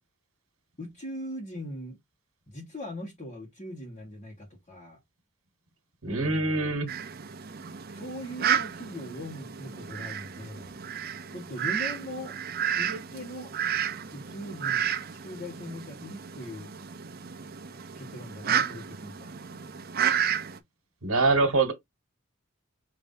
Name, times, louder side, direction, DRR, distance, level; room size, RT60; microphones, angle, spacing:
voice 1, 0.8-2.0 2.5-5.0 6.1-6.7 7.9-10.8 11.3-12.4 12.8-13.5 14.1-16.7 17.9-19.3, equal, 30° left, 1.6 m, -40 dB
voice 2, 6.0-6.9 21.0-21.7, right 3 dB, 80° right, 1.3 m, -24 dB
Fowl, 6.9-20.6, right 8 dB, 45° right, 0.6 m, -32 dB
5.0 x 3.2 x 2.7 m
head